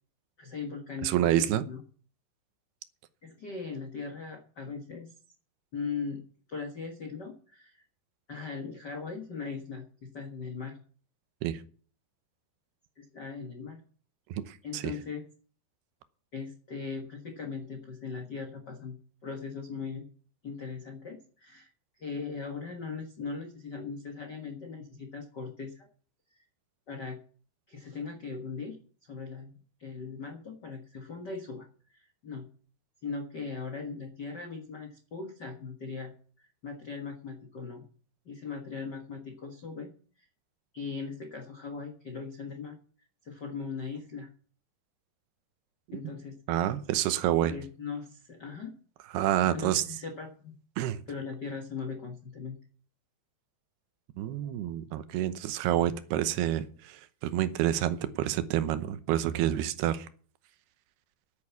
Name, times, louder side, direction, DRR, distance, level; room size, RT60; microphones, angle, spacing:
voice 1, 0.4-1.8 3.2-5.1 5.7-6.2 6.5-7.8 8.3-9.8 10.1-10.8 13.0-13.8 14.6-15.2 16.3-18.9 19.2-20.1 20.4-21.7 22.0-25.9 26.3-26.4 26.9-27.2 27.7-28.8 29.0-29.5 29.8-32.4 33.0-37.8 38.2-40.3 40.7-42.8 43.2-44.3 45.9-46.4 47.5-48.7 49.5-50.5 51.1-52.6, left 5 dB, 85° left, 0.9 m, -39 dB
voice 2, 1.0-1.6 11.4-11.6 14.3-14.9 45.9-46.1 46.5-47.6 49.1-49.8 50.8-51.0 54.2-60.1, right 12 dB, 80° right, 2.9 m, -28 dB
10.5 x 9.4 x 7.1 m
omnidirectional pair, 4.7 m